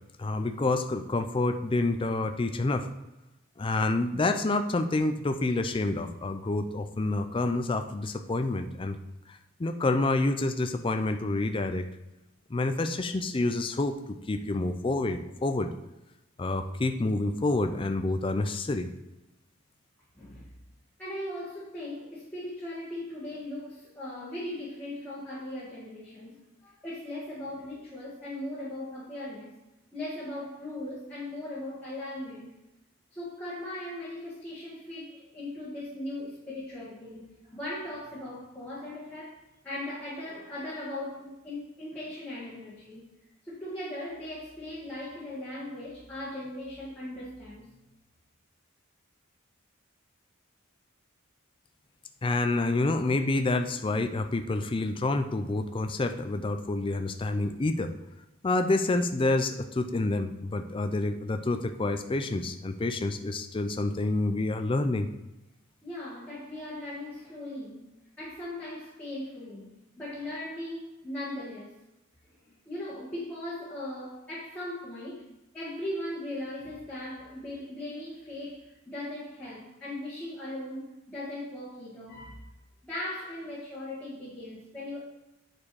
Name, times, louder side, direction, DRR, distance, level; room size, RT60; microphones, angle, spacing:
voice 1, 0.2-2.9 3.6-9.0 9.6-11.9 12.5-15.7 16.4-18.9 52.2-57.9 58.4-65.1, left 2 dB, 25° left, 7 dB, 0.4 m, -28 dB
voice 2, 20.1-20.5 21.0-29.6 29.9-32.5 33.1-43.1 43.4-47.7 65.8-71.8 72.2-82.5 82.8-85.0, left 1 dB, 5° left, -9 dB, 1.6 m, -39 dB
8.5 x 4.4 x 4.7 m, 0.98 s
head